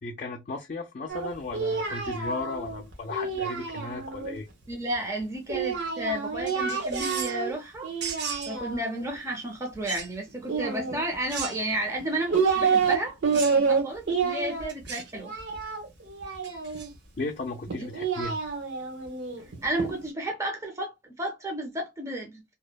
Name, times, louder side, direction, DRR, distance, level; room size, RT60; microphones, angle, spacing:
voice 1, 0.0-4.5 17.2-18.4, left 3 dB, 45° left, 0.4 m, -35 dB
Singing, 1.1-4.3 5.5-7.5 7.8-9.0 10.4-11.4 12.0-13.0 13.2-16.9 17.7-19.9, right 5 dB, 80° right, 1.1 m, -28 dB
voice 2, 4.7-7.9 8.5-15.3 17.8-17.9 19.6-22.5, right 1 dB, 15° right, 0.5 m, -32 dB
sound 1, 6.5-7.4 8.0-8.6 9.8-10.1 11.3-11.8 13.3-13.7 14.7-15.1 16.4-16.9, right 6 dB, 65° right, 0.6 m, -36 dB
2.8 x 2.0 x 2.2 m
head